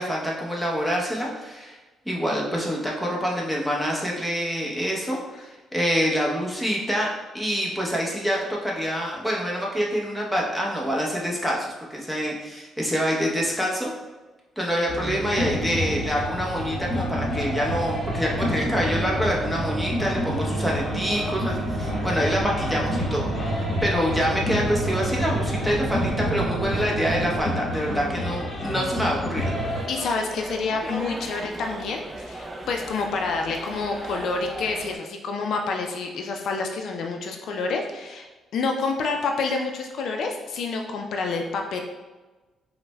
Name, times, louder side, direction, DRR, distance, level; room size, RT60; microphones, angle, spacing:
voice 1, 0.0-1.8 2.1-7.1 7.3-13.9 14.6-23.5 23.8-29.5, equal, ahead, -3 dB, 0.8 m, -26 dB
sound 1, 14.9-29.8, left 1 dB, 40° left, 1.1 m, -30 dB
sound 2, 15.3-27.4, right 2 dB, 85° right, 0.5 m, -31 dB
sound 3, 29.5-35.0, right 1 dB, 25° right, 0.4 m, -37 dB
voice 2, 29.9-41.8, left 4 dB, 70° left, 3 dB, 0.3 m, -28 dB
5.7 x 2.1 x 2.2 m, 1.2 s
cardioid pair, 90°, 0 cm